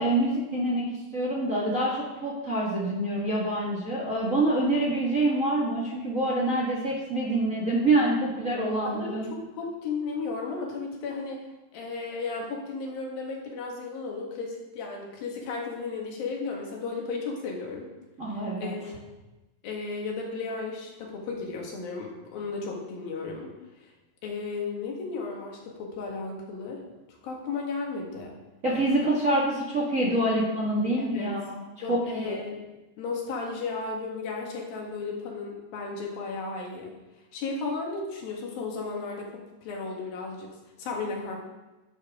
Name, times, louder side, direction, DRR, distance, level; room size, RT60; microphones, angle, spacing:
voice 1, 0.0-9.3 18.2-18.7 28.6-31.6 31.9-32.4, right 1 dB, 30° right, -4 dB, 1.7 m, -26 dB
voice 2, 8.9-11.4 11.7-17.9 18.6-18.9 19.6-23.5 23.8-23.9 24.2-26.8 27.2-28.3 31.0-31.4 31.8-32.6 33.0-36.9 37.3-41.4, left 4 dB, 80° left, -1 dB, 3.6 m, -34 dB
12.0 x 9.1 x 3.7 m, 1.1 s
omnidirectional pair, 4.2 m